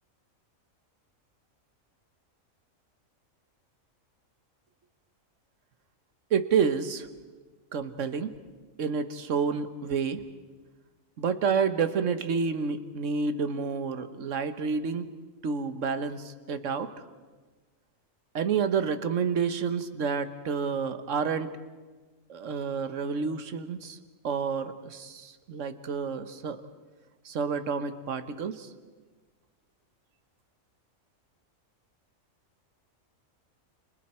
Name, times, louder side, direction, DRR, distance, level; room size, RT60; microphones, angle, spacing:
voice 1, 6.3-7.1 7.7-8.3 8.8-10.2 11.2-15.1 15.4-16.9 18.3-21.5 22.3-24.0 24.2-26.6 27.2-28.7, right 6 dB, 70° right, 10 dB, 1.5 m, -29 dB
30.0 x 27.5 x 4.4 m, 1.3 s
omnidirectional pair, 1.4 m